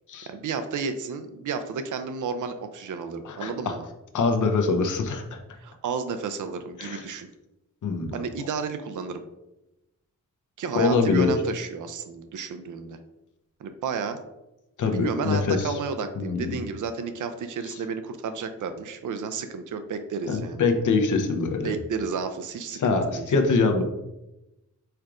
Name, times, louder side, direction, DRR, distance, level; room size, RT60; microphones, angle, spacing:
voice 1, 0.3-3.8 5.6-7.3 8.1-9.2 10.6-13.0 13.6-14.2 14.9-20.6 21.6-23.3, right 5 dB, 75° right, 9 dB, 0.5 m, -32 dB
voice 2, 3.2-3.7 4.1-5.4 6.8-7.0 7.8-8.1 10.7-11.4 14.8-15.7 16.2-16.6 20.3-21.7 22.7-23.8, left 4 dB, 75° left, 5 dB, 0.7 m, -24 dB
4.5 x 2.5 x 4.7 m, 0.94 s
wide cardioid pair, 120°, 30 cm